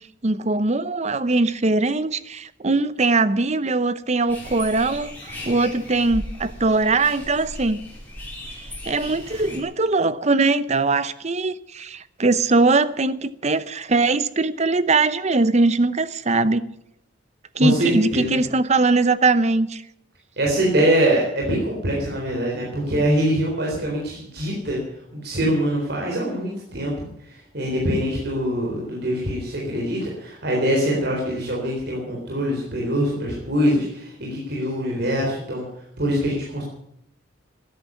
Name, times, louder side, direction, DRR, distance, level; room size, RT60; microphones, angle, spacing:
voice 1, 0.2-5.1 5.4-7.8 8.9-16.6 17.6-19.8, right 3 dB, 35° right, 0.8 m, -21 dB
sound 1, 4.3-9.6, left 1 dB, 10° left, 4.7 m, -37 dB
voice 2, 17.6-18.4 20.4-24.8 25.1-35.6 36.0-36.6, equal, 55° right, 4.0 m, -23 dB
13.5 x 11.0 x 9.6 m
head